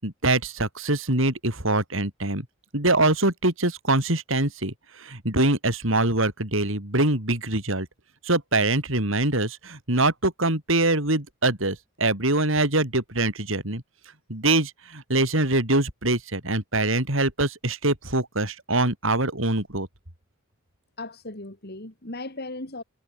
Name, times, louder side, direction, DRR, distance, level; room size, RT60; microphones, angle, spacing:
voice 1, 0.0-2.5 2.7-7.9 8.2-13.8 14.3-19.9, right 2 dB, 65° right, 5.4 m, -24 dB
voice 2, 21.0-22.8, left 2 dB, 50° left, 3.5 m, -37 dB
head